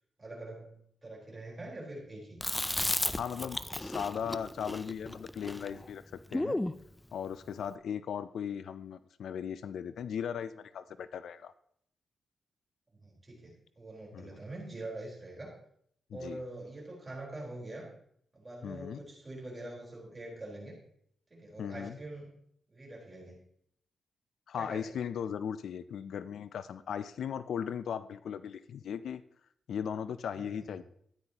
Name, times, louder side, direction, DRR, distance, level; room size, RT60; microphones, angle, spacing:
voice 1, 0.2-2.4 12.9-15.5 16.1-17.9 18.3-20.8 21.3-22.3 22.7-23.4 24.6-24.9 30.3-30.7, right 2 dB, 25° right, -3 dB, 4.2 m, -44 dB
Chewing mastication, 2.4-6.8, left 1 dB, 10° left, 0.4 m, -34 dB
voice 2, 3.1-6.6 7.1-11.5 14.1-14.3 16.1-16.4 18.6-19.0 21.6-22.0 24.5-29.2 29.7-30.8, left 8 dB, 80° left, 14 dB, 0.4 m, -37 dB
13.0 x 9.8 x 2.9 m, 0.68 s
cardioid pair, 105°, 0 cm